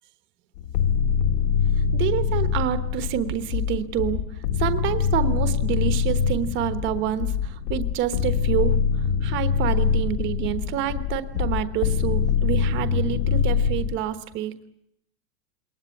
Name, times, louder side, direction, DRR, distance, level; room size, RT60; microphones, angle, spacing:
sound 1, 0.6-14.0, left 6 dB, 70° left, 2.2 m, -24 dB
voice 1, 1.9-14.5, right 11 dB, 25° right, 10 dB, 1.1 m, -28 dB
21.5 x 20.0 x 9.7 m, 0.79 s
supercardioid pair, 165°, 47 cm